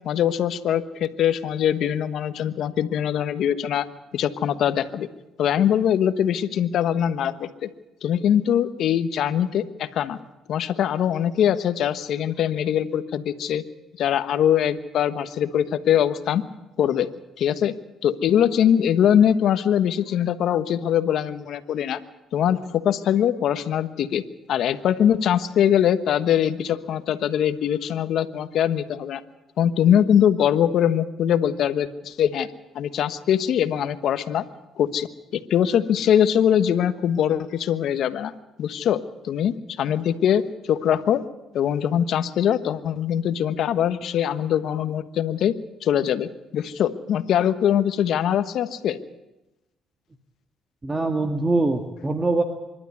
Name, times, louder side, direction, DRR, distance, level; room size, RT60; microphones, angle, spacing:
voice 1, 0.0-3.9 4.1-5.1 5.4-7.7 8.0-10.2 10.5-13.6 14.0-16.4 16.8-17.1 17.4-17.7 18.0-22.0 22.3-24.2 24.5-29.2 29.6-32.5 32.7-34.4 34.7-35.1 35.3-38.3 38.6-39.0 39.2-41.2 41.5-45.5 45.8-49.0, left 9 dB, 70° left, 11 dB, 1.2 m, -22 dB
voice 2, 50.8-52.4, right 2 dB, 25° right, 5 dB, 1.8 m, -23 dB
25.0 x 12.0 x 9.6 m, 1.0 s
supercardioid pair, 80°, 0 cm